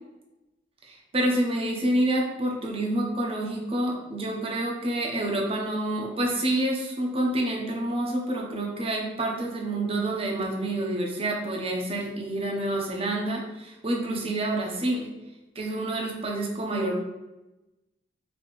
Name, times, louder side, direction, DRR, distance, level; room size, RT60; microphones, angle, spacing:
voice 1, 0.8-15.1 15.5-16.9, right 1 dB, 30° right, 0 dB, 0.7 m, -28 dB
4.1 x 2.8 x 3.1 m, 1.0 s
head